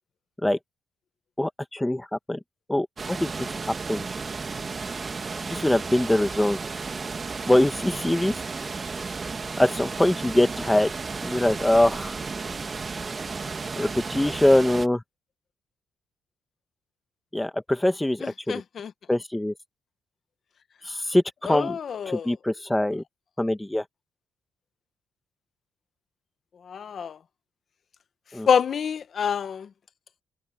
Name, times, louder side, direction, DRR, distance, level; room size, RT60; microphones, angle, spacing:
voice 1, 1.4-2.4 2.7-3.5 3.9-4.1 5.5-6.6 7.5-8.4 9.6-10.9 11.2-12.1 13.8-15.0 17.3-18.6 19.1-19.5 20.8-21.8 22.1-23.0 23.4-23.8 28.3-28.5, left 1 dB, 10° left, 2.0 m, -23 dB
sound 1, 3.0-14.9, right 4 dB, 35° right, 1.6 m, -33 dB
voice 2, 18.5-18.9 21.5-22.3 26.7-27.2 28.5-29.7, left 7 dB, 55° left, 1.1 m, -26 dB
open air
cardioid pair, 90°, 0 cm